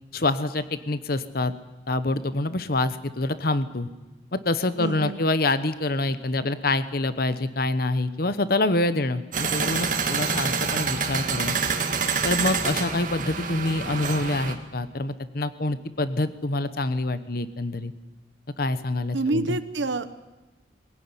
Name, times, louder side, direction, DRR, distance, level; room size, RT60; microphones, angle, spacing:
voice 1, 0.1-1.5 1.9-3.9 4.3-11.6 12.2-17.9 18.6-19.6, left 2 dB, 50° left, 13 dB, 1.0 m, -26 dB
voice 2, 4.8-5.2 19.1-20.1, right 2 dB, 75° right, 11 dB, 1.0 m, -27 dB
sound 1, 9.3-14.5, right 5 dB, 45° right, 2.2 m, -27 dB
22.5 x 16.0 x 9.7 m, 1.2 s
head